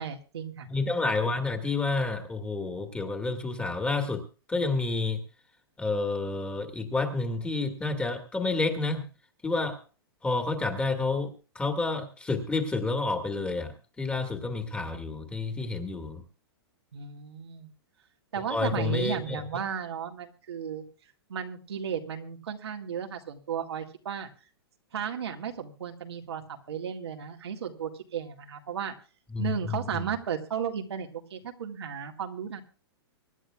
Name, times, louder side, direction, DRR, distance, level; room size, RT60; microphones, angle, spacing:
voice 1, 0.0-0.7 16.9-17.7 18.3-20.9 21.3-24.3 24.9-26.4 26.7-28.9 29.4-32.6, right 7 dB, 85° right, 3 dB, 1.9 m, -34 dB
voice 2, 0.7-5.2 5.8-9.0 9.4-9.8 10.2-11.3 11.6-16.2 18.5-19.4 29.3-30.2, left 3 dB, 10° left, 4 dB, 1.9 m, -29 dB
25.0 x 10.5 x 2.4 m, 0.36 s
hypercardioid pair, 140°, 13 cm